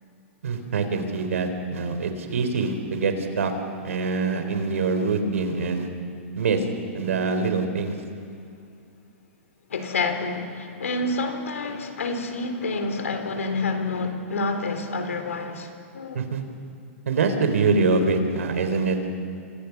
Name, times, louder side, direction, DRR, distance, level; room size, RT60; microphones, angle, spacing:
voice 1, 0.4-3.5 3.8-5.9 6.4-6.6 6.9-7.9 16.1-16.4 17.1-19.0, right 4 dB, 80° right, 7 dB, 4.0 m, -24 dB
voice 2, 9.7-16.2, left 3 dB, 90° left, 7 dB, 3.7 m, -28 dB
30.0 x 25.5 x 6.1 m, 2.5 s
hypercardioid pair, 130°, 7 cm